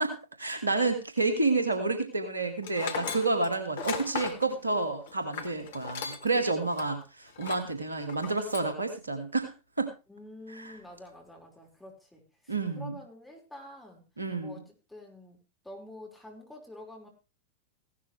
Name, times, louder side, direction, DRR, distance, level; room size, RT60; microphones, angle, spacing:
voice 1, 0.0-9.5 9.8-9.9 10.5-10.7 12.5-13.0 14.2-14.6, right 3 dB, 80° right, 7 dB, 2.2 m, -29 dB
Tools, 2.6-6.4 6.7-6.9 7.3-7.7 8.1-8.7, left 6 dB, 55° left, 1.8 m, -37 dB
voice 2, 10.1-14.0 14.4-17.1, left 1 dB, 5° left, -1 dB, 5.3 m, -48 dB
16.5 x 12.0 x 3.4 m, 0.30 s
figure-of-eight pair, 90°, 0 cm